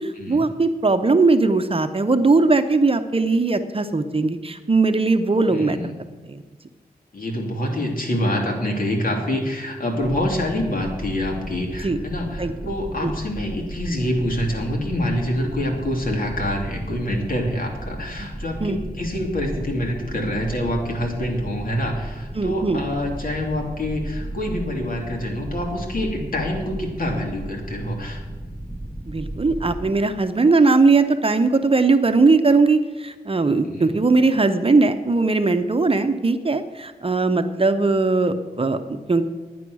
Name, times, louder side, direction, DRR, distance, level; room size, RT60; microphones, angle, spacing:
voice 1, 0.0-5.9 6.3-6.4 11.8-12.0 12.4-12.5 13.0-13.1 18.6-18.8 22.3-22.8 29.1-39.2, right 3 dB, 35° right, 8 dB, 0.8 m, -19 dB
voice 2, 5.5-5.9 7.1-28.2 33.6-33.9, left 1 dB, 60° left, 1 dB, 2.6 m, -26 dB
sound 1, 10.0-30.0, right 1 dB, ahead, 0.9 m, -34 dB
11.0 x 9.3 x 6.2 m, 1.3 s
wide cardioid pair, 80°, 16 cm